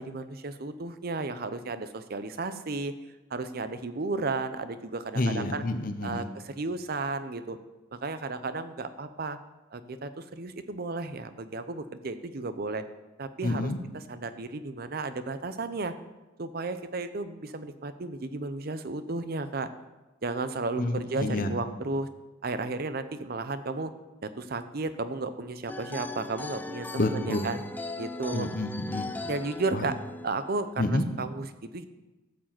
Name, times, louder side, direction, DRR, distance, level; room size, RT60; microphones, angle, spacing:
voice 1, 0.0-2.9 3.3-5.6 6.0-7.6 7.9-9.4 9.7-12.8 13.2-15.9 16.4-19.7 20.2-22.1 22.4-23.9 24.2-27.6 28.0-28.5 29.2-30.0 30.2-31.9, right 3 dB, 50° right, 11 dB, 0.6 m, -33 dB
voice 2, 5.1-6.3 13.4-13.8 20.8-21.6 27.0-27.5 28.3-29.1 29.7-29.8 30.8-31.0, left 2 dB, 45° left, 7 dB, 0.9 m, -29 dB
sound 1, 25.7-30.7, left 2 dB, 10° left, 0.5 m, -39 dB
13.0 x 4.8 x 7.6 m, 1.1 s
head